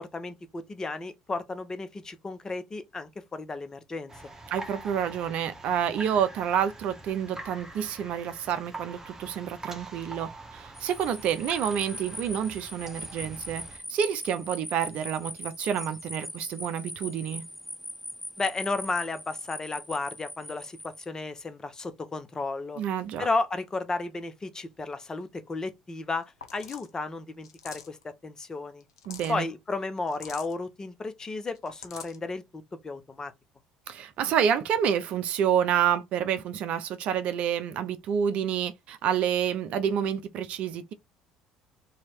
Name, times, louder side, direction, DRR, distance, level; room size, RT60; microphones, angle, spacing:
voice 1, 0.0-4.1 18.4-22.8 23.2-28.8 29.3-33.3, left 3 dB, 25° left, 1.0 m, -33 dB
sound 1, 4.1-13.8, right 2 dB, 20° right, 1.0 m, -44 dB
voice 2, 4.5-13.6 13.9-17.4 22.8-23.3 29.1-29.5 33.9-40.9, right 8 dB, 60° right, 0.6 m, -28 dB
sound 2, 10.7-21.0, equal, ahead, 0.7 m, -41 dB
sound 3, 26.1-26.2 26.4-26.9 27.4-28.0 28.8-29.4 30.1-30.5 31.5-32.2, left 7 dB, 90° left, 0.7 m, -44 dB
3.1 x 2.8 x 4.5 m
hypercardioid pair, 60°, 2 cm